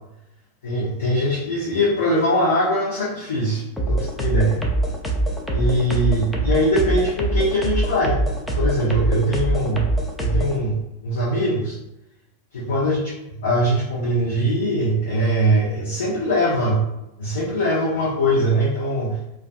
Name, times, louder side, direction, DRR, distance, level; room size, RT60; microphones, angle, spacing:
voice 1, 0.6-4.7 5.5-9.9 10.2-11.8 12.5-13.0 13.3-16.8 17.2-19.2, equal, 65° left, -7 dB, 0.6 m, -22 dB
sound 1, 3.8-10.6, right 2 dB, 5° left, 0.4 m, -23 dB
2.3 x 2.3 x 2.4 m, 0.88 s
figure-of-eight pair, 90°, 0 cm